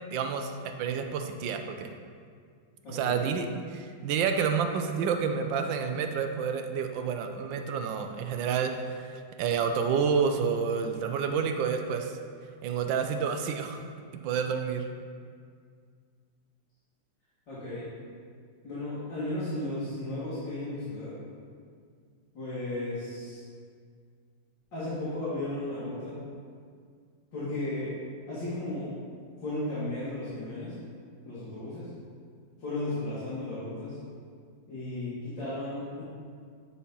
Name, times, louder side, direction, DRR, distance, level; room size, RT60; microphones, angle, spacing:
voice 1, 0.1-0.5 0.8-1.9 2.9-12.2 12.6-13.9 14.2-14.8, right 6 dB, 90° right, 6 dB, 1.4 m, -29 dB
voice 2, 2.8-3.1 17.5-17.9 18.6-21.1 22.3-23.4 24.7-26.2 27.3-28.0 28.3-28.9 29.4-30.8 31.2-31.9 32.6-34.0 34.7-36.0, left 1 dB, 80° left, -12 dB, 2.8 m, -34 dB
9.3 x 4.2 x 5.5 m, 2.1 s
omnidirectional pair, 2.0 m